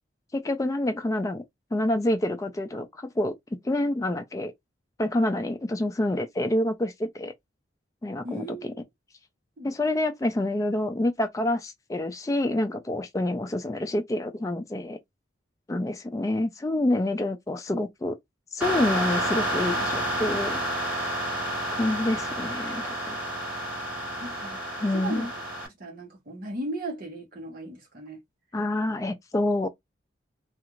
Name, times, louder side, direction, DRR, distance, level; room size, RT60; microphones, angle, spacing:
voice 1, 0.3-1.4 1.7-3.3 3.6-4.5 5.0-7.3 8.0-8.6 9.6-15.0 15.7-18.2 18.5-20.6 21.7-23.2 24.8-25.3 28.5-29.7, left 1 dB, 15° left, 0.3 m, -27 dB
voice 2, 8.2-8.8 9.6-9.7 24.2-24.6 24.9-25.3 25.8-28.2, right 1 dB, 50° right, 1.0 m, -36 dB
sound 1, 18.6-25.7, equal, 5° right, 1.1 m, -30 dB
2.4 x 2.4 x 3.0 m
head